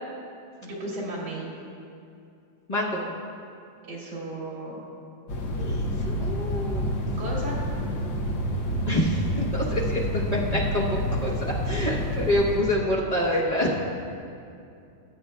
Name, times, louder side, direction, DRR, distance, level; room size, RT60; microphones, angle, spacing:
voice 1, 0.6-1.5 3.8-4.8 7.2-7.6, right 1 dB, 85° right, -5 dB, 3.1 m, -34 dB
voice 2, 2.7-3.0 5.6-6.9 8.9-13.8, left 1 dB, 45° left, -5 dB, 0.5 m, -27 dB
sound 1, 5.3-12.6, equal, 70° left, 1.7 m, -28 dB
19.0 x 8.4 x 2.2 m, 2.5 s
omnidirectional pair, 2.2 m